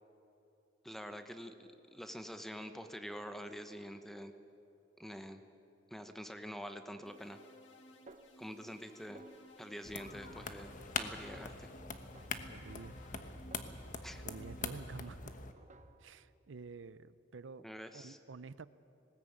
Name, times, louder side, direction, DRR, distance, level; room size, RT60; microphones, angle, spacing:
voice 1, 0.8-4.3 5.0-5.4 5.9-7.4 8.4-9.2 9.6-11.7 14.0-14.2 17.6-18.2, equal, ahead, 8 dB, 1.0 m, -46 dB
sound 1, 7.1-14.7, left 1 dB, 65° left, 2.5 m, -59 dB
Snare drum, 8.1-8.9 9.2-9.7 10.2-11.0 11.3-11.7 12.2-14.3 14.6-15.1 15.6-16.3, right 3 dB, 40° right, 1.0 m, -61 dB
sound 2, 9.8-15.5, left 4 dB, 45° left, 1.2 m, -43 dB
voice 2, 12.5-12.9 14.2-15.3 16.0-17.7 17.9-18.7, right 4 dB, 80° right, 16 dB, 0.6 m, -49 dB
19.5 x 18.0 x 8.8 m, 2.9 s
head